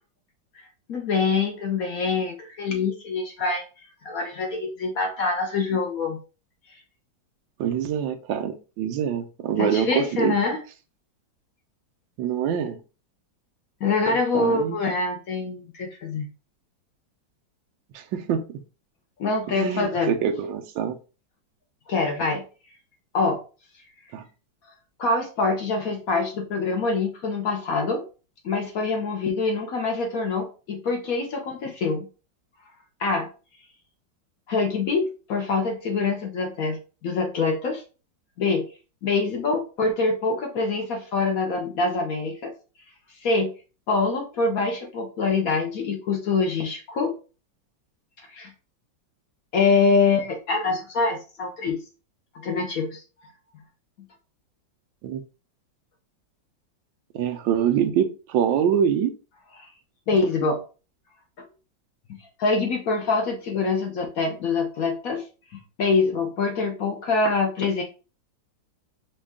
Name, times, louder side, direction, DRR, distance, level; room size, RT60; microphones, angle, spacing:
voice 1, 0.9-3.6 4.0-6.2 9.6-10.6 13.8-16.3 19.2-20.1 21.9-22.4 23.1-23.4 25.0-28.0 28.4-32.1 33.0-33.3 34.5-37.8 38.4-38.7 39.0-42.5 43.2-43.5 43.9-47.2 48.3-48.5 49.5-51.8 52.3-53.0 60.1-60.6 62.4-65.2 65.8-67.8, left 4 dB, 60° left, 3 dB, 1.0 m, -25 dB
voice 2, 7.6-10.3 12.2-12.8 14.3-14.8 17.9-18.6 19.5-21.0 24.1-24.2 55.0-55.2 57.1-59.1, right 8 dB, 85° right, 6 dB, 1.3 m, -25 dB
5.3 x 2.2 x 3.6 m, 0.33 s
omnidirectional pair, 2.0 m